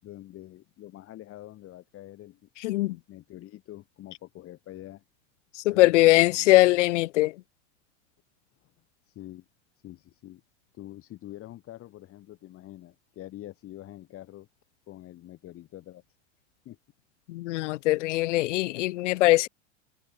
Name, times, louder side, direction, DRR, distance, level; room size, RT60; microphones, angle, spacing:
voice 1, 0.0-5.0 5.7-6.5 8.6-8.7 9.0-9.5 9.8-10.4 10.7-14.5 14.9-16.0 16.6-16.8, left 14 dB, 40° left, 7.3 m, -45 dB
voice 2, 2.6-3.0 5.7-7.3 17.3-19.5, left 18 dB, 90° left, 0.5 m, -21 dB
supercardioid pair, 125°, 35 cm